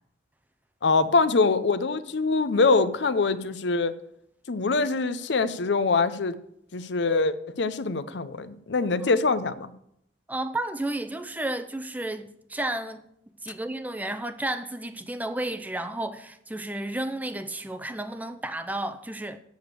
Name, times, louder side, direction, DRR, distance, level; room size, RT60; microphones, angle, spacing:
voice 1, 0.8-3.9 4.5-6.4 6.7-9.7, left 4 dB, 70° left, 0.6 m, -24 dB
voice 2, 10.3-13.0 13.4-19.4, right 1 dB, 10° right, 0.5 m, -32 dB
7.9 x 6.9 x 8.1 m
head